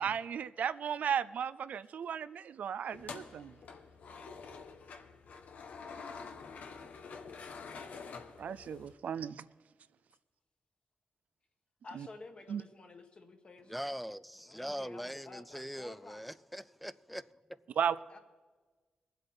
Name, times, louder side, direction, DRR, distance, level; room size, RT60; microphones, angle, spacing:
voice 1, 0.0-3.6 8.4-9.5 12.0-12.1 12.5-12.6 17.8-18.0, right 8 dB, 80° right, 0.5 m, -35 dB
sound 1, 2.9-8.9, left 5 dB, 80° left, 1.2 m, -47 dB
voice 2, 11.8-13.8 14.4-16.2 18.1-18.2, left 3 dB, 45° left, 1.7 m, -52 dB
voice 3, 13.7-17.3, equal, ahead, 0.4 m, -42 dB
22.0 x 7.9 x 4.4 m
cardioid pair, 80°, 3 cm